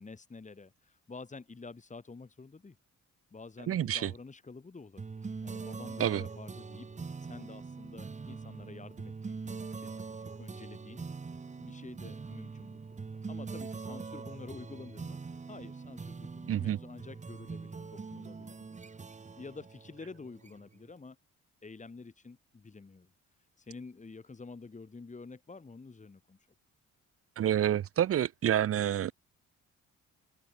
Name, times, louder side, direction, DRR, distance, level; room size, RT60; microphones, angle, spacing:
voice 1, 0.0-2.8 3.3-5.1 5.4-6.9 7.2-9.9 10.4-11.0 11.6-12.8 13.3-18.7 19.4-21.2 21.6-23.1 23.6-26.4, left 4 dB, 25° left, 3.4 m, -49 dB
voice 2, 3.7-4.1 6.0-6.2 16.5-16.8 27.4-29.1, right 10 dB, 50° right, 0.6 m, -28 dB
sound 1, 5.0-20.8, right 4 dB, 25° right, 1.2 m, -43 dB
open air
cardioid pair, 90°, 30 cm